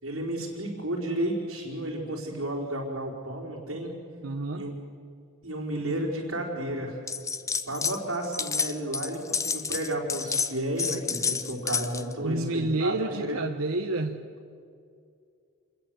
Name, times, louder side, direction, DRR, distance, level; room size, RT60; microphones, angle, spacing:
voice 1, 0.0-3.9 4.5-4.7 5.4-7.0 7.7-13.4, right 1 dB, 70° right, -5 dB, 4.4 m, -32 dB
voice 2, 4.2-4.7 12.2-14.3, right 2 dB, 90° right, 4 dB, 1.1 m, -29 dB
sound 1, 7.1-8.0 8.2-12.1, left 5 dB, 15° left, 0.6 m, -30 dB
27.5 x 21.5 x 7.9 m, 2.4 s
head